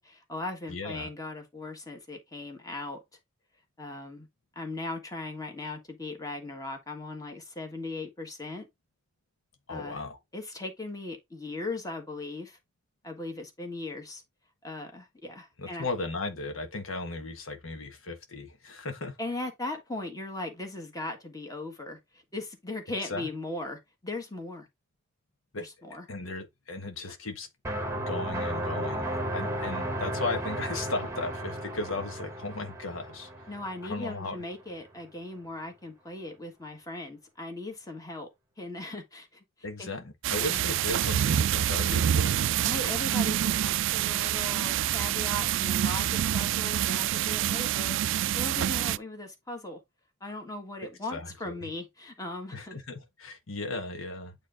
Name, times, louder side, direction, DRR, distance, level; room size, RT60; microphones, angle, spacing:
voice 1, 0.0-3.0 3.8-4.3 4.5-8.7 9.7-10.0 10.3-12.6 13.0-14.2 14.6-15.9 19.2-24.7 25.6-26.1 27.1-27.2 33.5-38.3 38.6-39.4 39.8-39.9 40.4-40.6 42.6-49.8 50.2-52.7, left 2 dB, 20° left, 1.7 m, -38 dB
voice 2, 0.7-1.1 9.7-10.2 15.6-19.2 23.1-23.3 25.5-25.6 26.1-27.5 27.9-33.3 33.8-34.4 39.6-42.4 50.8-51.7 52.5-54.3, left 2 dB, 85° left, 1.4 m, -36 dB
sound 1, 27.6-34.4, right 1 dB, 15° right, 1.1 m, -34 dB
sound 2, 40.2-49.0, right 11 dB, 65° right, 0.3 m, -27 dB
8.9 x 3.4 x 3.8 m
head